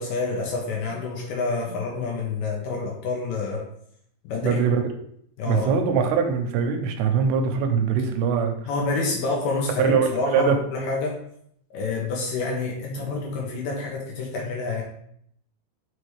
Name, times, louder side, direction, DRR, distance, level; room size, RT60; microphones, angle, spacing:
voice 1, 0.0-3.6 4.3-4.6 5.4-5.8 8.7-11.2 11.7-14.8, left 3 dB, 70° left, -1 dB, 2.3 m, -28 dB
voice 2, 4.4-4.8 5.5-8.5 9.8-10.6, right 6 dB, 85° right, 5 dB, 2.8 m, -22 dB
6.3 x 5.1 x 3.3 m, 0.70 s
omnidirectional pair, 4.7 m